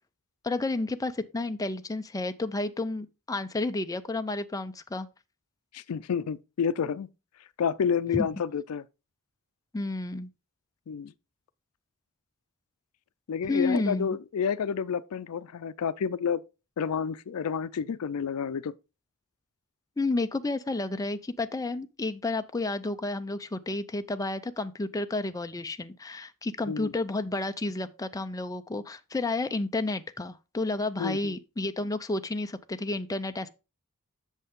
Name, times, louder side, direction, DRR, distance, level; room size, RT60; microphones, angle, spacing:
voice 1, 0.4-5.1 8.1-8.3 9.7-10.3 13.4-14.2 20.0-33.5, left 2 dB, 15° left, 0.5 m, -31 dB
voice 2, 5.7-7.1 7.6-8.8 10.9-11.1 13.3-16.4 16.8-18.7 26.7-26.9 31.0-31.3, left 7 dB, 85° left, 0.4 m, -29 dB
8.1 x 6.5 x 3.6 m
head